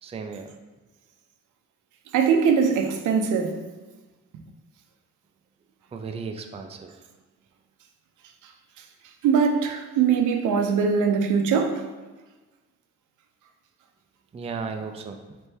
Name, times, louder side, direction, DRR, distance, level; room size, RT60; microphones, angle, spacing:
voice 1, 0.0-0.5 5.9-7.0 14.3-15.2, right 5 dB, 20° right, 0.4 m, -35 dB
voice 2, 2.1-3.6 9.2-11.8, right 6 dB, 80° right, 0.6 m, -21 dB
3.4 x 3.3 x 4.4 m
cardioid pair, 90°, 30 cm